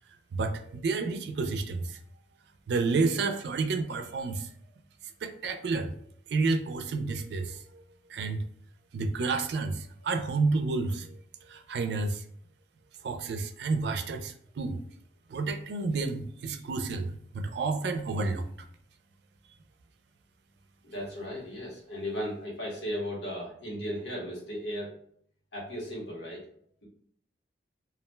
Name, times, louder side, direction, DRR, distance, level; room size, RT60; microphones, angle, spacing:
voice 1, 0.3-2.0 2.7-4.5 5.2-5.9 6.3-7.8 8.1-8.4 8.9-11.1 11.5-12.2 13.0-14.8 15.3-18.5, right 3 dB, 75° right, 7 dB, 0.3 m, -30 dB
voice 2, 20.8-24.9 25.5-26.4, equal, 80° left, -4 dB, 1.1 m, -36 dB
2.3 x 2.1 x 3.2 m, 0.62 s
head